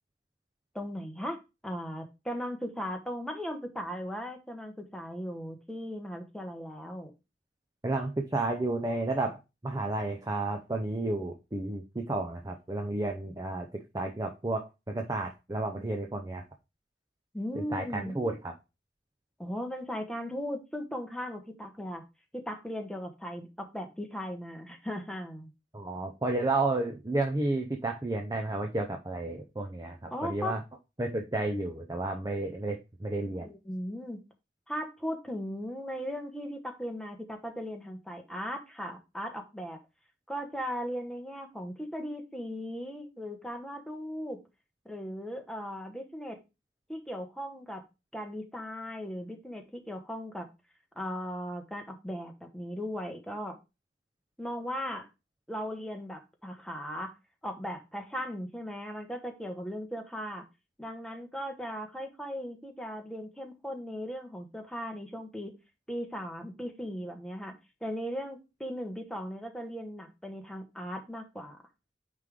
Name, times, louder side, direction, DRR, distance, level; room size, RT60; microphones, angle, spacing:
voice 1, 0.7-1.4 1.6-7.1 17.3-18.2 19.4-22.0 22.3-25.5 30.1-30.6 33.4-34.2 34.7-39.8 40.3-44.4 44.8-46.4 46.9-47.8 48.1-50.5 50.9-53.5 54.4-55.1 55.5-57.1 57.4-60.4 60.8-65.5 65.9-67.5 67.8-71.6, equal, 5° left, 4 dB, 1.0 m, -37 dB
voice 2, 7.8-9.4 9.6-13.7 13.9-16.4 17.7-18.5 25.7-30.6 31.0-33.5, right 2 dB, 20° right, 3 dB, 0.6 m, -32 dB
9.5 x 3.4 x 3.6 m, 0.26 s
head